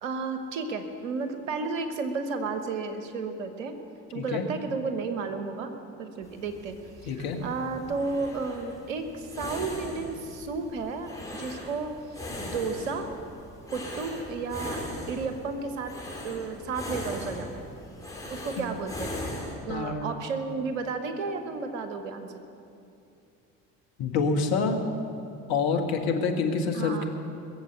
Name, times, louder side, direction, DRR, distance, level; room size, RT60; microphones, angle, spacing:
voice 1, 0.0-3.8 4.1-5.7 6.0-6.8 7.1-13.1 13.7-14.8 15.1-15.9 16.2-17.6 18.3-19.2 19.6-22.3 26.7-27.0, right 4 dB, 85° right, 7 dB, 1.2 m, -33 dB
sound 1, 6.2-19.6, left 1 dB, 10° left, 4.4 m, -39 dB
voice 2, 7.1-7.4 18.6-18.7 19.7-20.1 24.0-24.8 25.5-27.1, left 4 dB, 65° left, 4 dB, 1.8 m, -27 dB
21.0 x 7.4 x 7.7 m, 2.7 s
hypercardioid pair, 60°, 39 cm